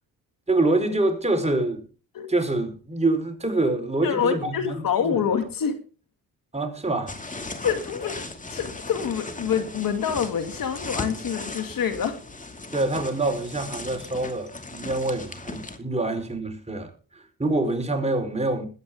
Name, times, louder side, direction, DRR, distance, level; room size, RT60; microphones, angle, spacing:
voice 1, 0.5-1.8 2.3-4.7 5.1-5.2 6.5-7.2 12.7-18.7, right 2 dB, 15° right, 4.5 m, -26 dB
voice 2, 4.0-5.8 7.6-12.2, left 7 dB, 65° left, 2.4 m, -26 dB
sound 1, 7.1-15.8, left 2 dB, 20° left, 2.5 m, -37 dB
22.0 x 8.9 x 3.7 m
cardioid pair, 85°, 37 cm